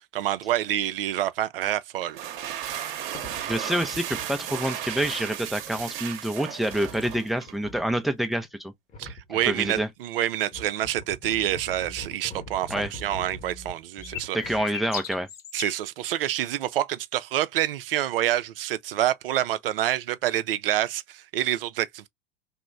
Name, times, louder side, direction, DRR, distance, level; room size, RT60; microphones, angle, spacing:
voice 1, 0.1-2.2 9.0-14.4 15.5-22.1, right 12 dB, 70° right, 0.5 m, -27 dB
sound 1, 2.0-7.6, right 10 dB, 50° right, 0.8 m, -35 dB
sound 2, 2.7-2.8 3.1-4.4 4.8-5.2 5.8-5.9 6.7-8.0 8.9-9.9 10.4-14.7, left 1 dB, 25° left, 0.9 m, -43 dB
voice 2, 3.5-8.7 9.3-9.9 12.7-12.9 14.3-15.3, right 1 dB, ahead, 0.3 m, -27 dB
sound 3, 14.0-15.8, left 9 dB, 75° left, 0.6 m, -36 dB
3.0 x 2.1 x 3.6 m
figure-of-eight pair, 90°, 30 cm